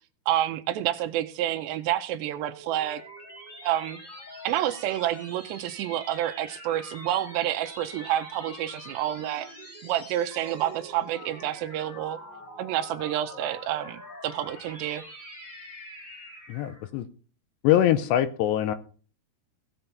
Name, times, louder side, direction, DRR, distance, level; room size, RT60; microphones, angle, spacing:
voice 1, 0.3-3.0 3.6-4.0 4.4-9.5 9.8-12.2 12.6-15.0, right 12 dB, 80° right, 2.7 m, -29 dB
sound 1, 2.2-16.9, equal, 10° left, 3.3 m, -45 dB
voice 2, 16.5-17.1 17.6-18.8, left 11 dB, 85° left, 2.8 m, -23 dB
16.5 x 5.7 x 5.3 m
omnidirectional pair, 5.2 m